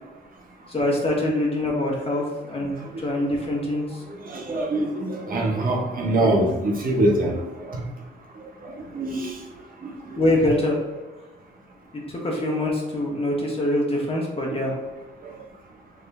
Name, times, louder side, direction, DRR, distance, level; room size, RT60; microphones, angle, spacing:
voice 1, 0.7-2.7 3.0-4.0 10.2-10.8 11.9-14.7, left 1 dB, 30° left, -2 dB, 1.5 m, -24 dB
voice 2, 2.8-3.2 4.2-7.4 7.7-7.8 8.4-9.4 9.8-10.2, right 1 dB, 45° right, -1 dB, 1.0 m, -25 dB
6.4 x 3.5 x 2.3 m, 1.3 s
cardioid pair, 90°, 20 cm